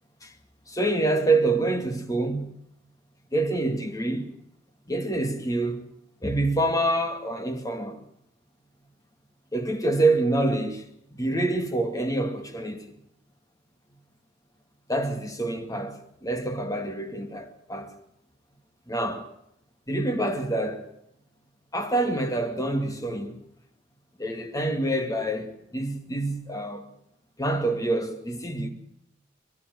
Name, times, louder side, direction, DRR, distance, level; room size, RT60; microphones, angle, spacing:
voice 1, 0.7-2.5 3.3-4.3 4.9-5.9 6.2-8.0 9.5-10.8 11.1-12.8 14.9-17.9 18.9-19.3 19.9-20.9 21.7-23.4 24.2-26.8 27.4-28.7, right 2 dB, 20° left, 2.1 m, -26 dB
23.0 x 12.0 x 9.5 m
head